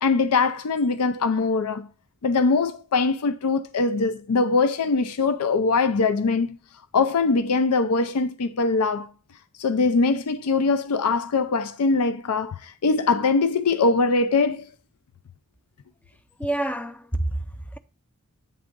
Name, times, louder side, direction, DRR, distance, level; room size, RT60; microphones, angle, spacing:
voice 1, 0.0-1.9 2.2-6.6 6.9-9.1 9.6-14.7, left 4 dB, 80° left, 0.5 m, -22 dB
voice 2, 16.4-17.8, right 1 dB, 5° left, 0.5 m, -28 dB
8.6 x 3.6 x 5.1 m
head